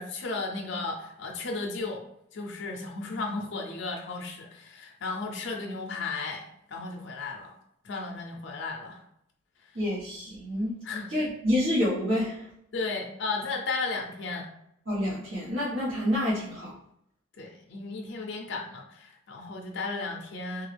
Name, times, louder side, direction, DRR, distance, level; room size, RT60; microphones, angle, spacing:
voice 1, 0.0-2.0 2.3-7.5 7.8-9.0 10.8-11.1 12.7-14.5 17.4-20.7, left 3 dB, 60° left, 0 dB, 0.4 m, -34 dB
voice 2, 9.7-10.7 11.1-12.5 14.9-16.7, left 1 dB, 75° right, -10 dB, 1.1 m, -28 dB
3.0 x 2.3 x 3.2 m, 0.75 s
head